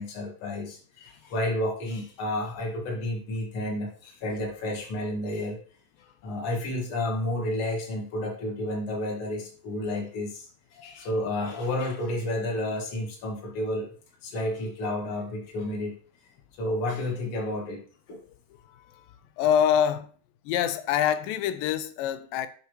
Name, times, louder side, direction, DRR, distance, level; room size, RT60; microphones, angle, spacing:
voice 1, 0.0-5.6 6.2-13.9 14.2-16.0 16.6-17.8 18.1-18.2, left 1 dB, 45° left, 2.0 m, -31 dB
voice 2, 18.6-20.1 20.5-22.5, left 9 dB, 90° left, 2.3 m, -26 dB
6.6 x 5.4 x 3.1 m
omnidirectional pair, 3.9 m